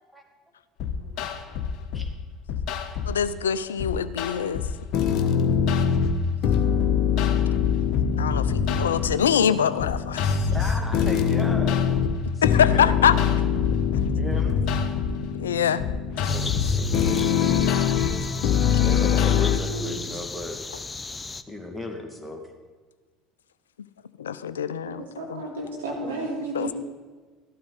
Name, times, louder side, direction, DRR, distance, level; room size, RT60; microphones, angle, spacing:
sound 1, 0.8-2.1 2.5-3.2 3.8-19.6, left 7 dB, 55° left, 1.1 m, -23 dB
voice 1, 3.1-4.7 8.2-10.3 12.4-13.2 15.4-15.8 24.2-25.4 26.5-26.7, left 8 dB, 85° left, 15 dB, 0.4 m, -24 dB
voice 2, 5.1-5.4 10.5-11.8 12.3-13.0 14.1-14.6 16.2-17.7 18.8-20.6 21.5-22.5, left 2 dB, ahead, 2 dB, 2.3 m, -36 dB
sound 2, 16.3-21.4, left 3 dB, 20° left, 0.6 m, -35 dB
voice 3, 19.7-20.0 24.9-26.7, right 2 dB, 85° right, -1 dB, 2.7 m, -33 dB
13.5 x 12.0 x 4.1 m, 1.4 s
hypercardioid pair, 70°, 0 cm